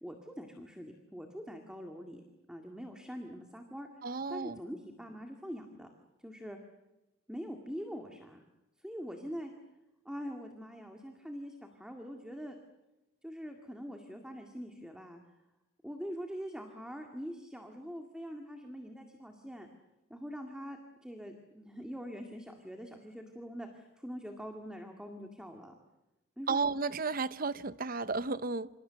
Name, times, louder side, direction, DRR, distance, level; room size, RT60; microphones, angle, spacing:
voice 1, 0.0-2.2 2.5-3.9 4.3-5.9 6.2-6.6 7.3-8.4 8.8-9.5 10.0-12.6 13.2-15.2 15.8-19.7 20.1-25.7 26.4-26.6, equal, 5° right, 2.1 m, -44 dB
voice 2, 4.0-4.6 26.5-28.7, right 4 dB, 45° right, 0.8 m, -33 dB
27.5 x 26.5 x 6.9 m
head